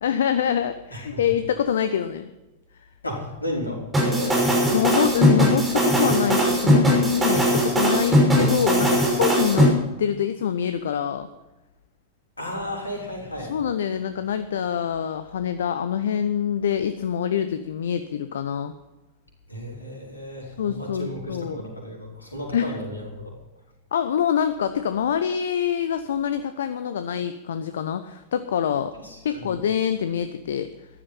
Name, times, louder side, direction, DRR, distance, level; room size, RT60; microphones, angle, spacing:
voice 1, 0.0-2.3 4.7-11.3 13.5-18.7 20.4-21.6 22.5-22.8 23.9-28.9 29.2-30.7, left 8 dB, 65° left, 11 dB, 0.8 m, -25 dB
voice 2, 0.9-1.2 3.0-4.5 12.4-13.5 19.5-23.3 29.0-29.5, equal, 80° left, -1 dB, 5.0 m, -33 dB
sound 1, 3.9-9.7, equal, 15° right, 5.6 m, -19 dB
14.5 x 12.0 x 5.7 m, 1.1 s
figure-of-eight pair, 90°, 0 cm